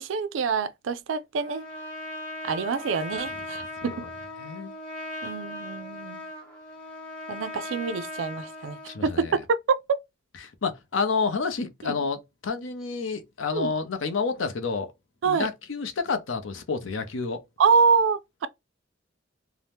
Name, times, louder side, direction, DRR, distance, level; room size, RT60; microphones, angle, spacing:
voice 1, 0.0-1.7 2.4-4.1 5.2-6.2 7.3-10.0 11.8-12.0 13.5-13.7 15.2-15.5 17.6-18.5, right 5 dB, 85° right, 0.4 m, -26 dB
Trumpet, 1.4-9.0, left 1 dB, 5° left, 1.2 m, -38 dB
voice 2, 4.4-4.7 8.9-9.3 10.6-14.9 15.3-17.4, left 4 dB, 90° left, 0.6 m, -29 dB
2.7 x 2.0 x 3.3 m
head